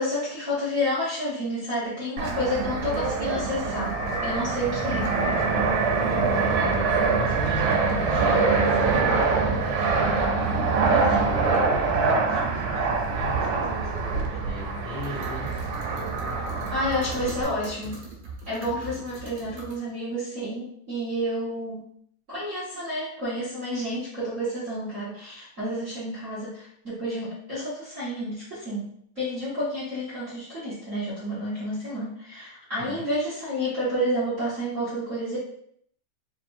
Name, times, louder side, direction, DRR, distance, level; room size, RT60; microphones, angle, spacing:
voice 1, 0.0-4.0 4.2-5.0 11.1-11.2 16.7-17.9 18.5-21.8 22.3-28.8 29.1-35.4, equal, 40° right, -11 dB, 1.2 m, -30 dB
Fixed-wing aircraft airplane, 2.2-17.4, right 4 dB, 80° right, 2.2 m, -24 dB
voice 2, 4.6-5.0 6.2-9.8 10.5-15.6 18.6-18.8 32.8-33.1, left 1 dB, 70° left, -7 dB, 1.2 m, -38 dB
sound 1, 15.0-19.8, right 4 dB, 65° right, 2.1 m, -42 dB
5.2 x 2.9 x 2.6 m, 0.67 s
omnidirectional pair, 3.5 m